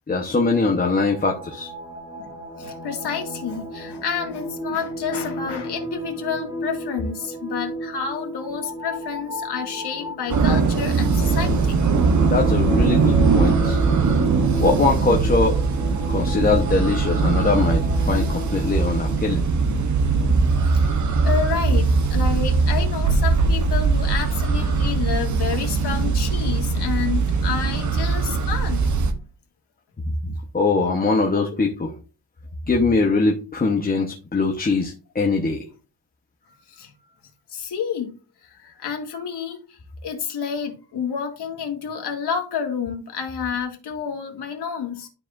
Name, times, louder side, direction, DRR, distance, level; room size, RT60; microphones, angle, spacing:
voice 1, 0.1-1.7 12.3-13.8 14.6-15.6 16.1-19.4 30.2-31.9 32.7-35.6, left 3 dB, 20° left, 0 dB, 0.9 m, -22 dB
sound 1, 0.8-19.2, equal, 10° right, 2.1 m, -34 dB
voice 2, 2.6-11.8 20.7-20.8 21.2-28.8 36.7-36.9 37.5-38.1 38.4-45.1, left 7 dB, 70° left, 3 dB, 2.0 m, -29 dB
sound 2, 10.3-29.1, right 4 dB, 45° right, 0.9 m, -20 dB
12.0 x 4.9 x 2.5 m, 0.35 s
wide cardioid pair, 175°, 41 cm